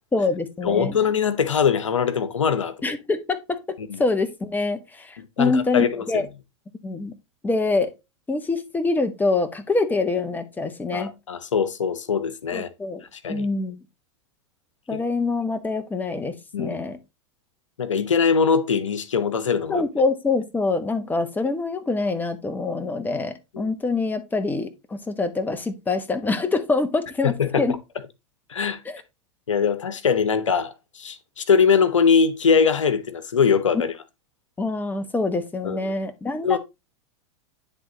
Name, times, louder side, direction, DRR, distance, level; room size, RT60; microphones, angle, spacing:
voice 1, 0.1-1.0 2.8-3.6 4.0-6.3 6.8-7.1 7.4-7.9 8.3-11.1 12.5-13.0 13.3-13.8 14.9-17.0 19.7-27.7 28.8-29.0 34.6-36.6, left 3 dB, 10° left, 1.1 m, -25 dB
voice 2, 0.6-2.7 3.8-4.0 5.2-6.3 10.9-12.7 13.1-13.5 14.9-15.0 16.5-16.8 17.8-19.9 23.5-23.7 27.2-27.6 28.5-28.8 29.5-33.9 35.6-35.9 36.4-36.6, left 6 dB, 90° left, 0.9 m, -22 dB
10.0 x 3.6 x 3.9 m
hypercardioid pair, 105°, 16 cm